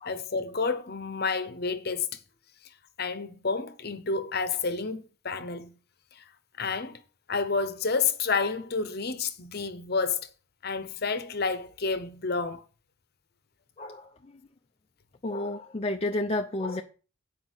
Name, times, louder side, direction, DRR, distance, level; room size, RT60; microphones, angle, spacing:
voice 1, 0.1-2.2 3.0-5.7 6.1-6.2 6.6-7.0 7.3-10.3 10.6-12.6, left 4 dB, 50° left, 0.9 m, -30 dB
voice 2, 13.8-14.3 15.2-16.8, left 2 dB, 30° left, 0.5 m, -31 dB
9.3 x 4.9 x 6.3 m
head